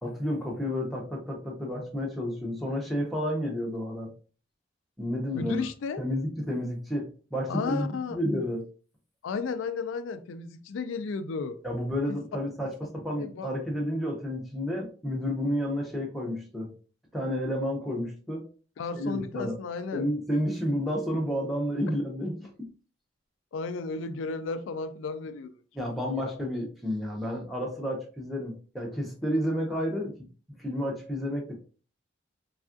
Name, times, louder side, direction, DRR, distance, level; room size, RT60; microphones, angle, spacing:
voice 1, 0.0-4.1 5.0-5.7 6.0-8.6 11.6-16.7 17.1-18.5 18.9-19.6 19.9-22.7 25.7-30.1 30.6-31.5, equal, ahead, 0.7 m, -31 dB
voice 2, 5.3-6.0 7.5-8.2 9.2-11.6 13.2-13.5 18.8-20.1 23.5-25.5 26.1-26.2, left 4 dB, 85° left, 0.3 m, -33 dB
3.4 x 2.3 x 2.5 m
head